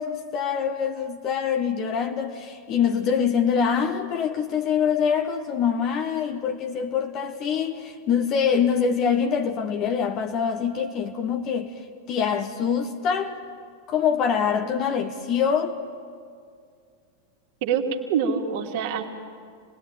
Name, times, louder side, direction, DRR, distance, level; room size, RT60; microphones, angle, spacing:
voice 1, 0.0-11.8 12.1-13.4 13.9-15.8, left 7 dB, 35° left, 1.3 m, -24 dB
voice 2, 17.6-19.1, right 7 dB, 50° right, 2.7 m, -25 dB
28.5 x 20.5 x 9.1 m
figure-of-eight pair, 90°, 0 cm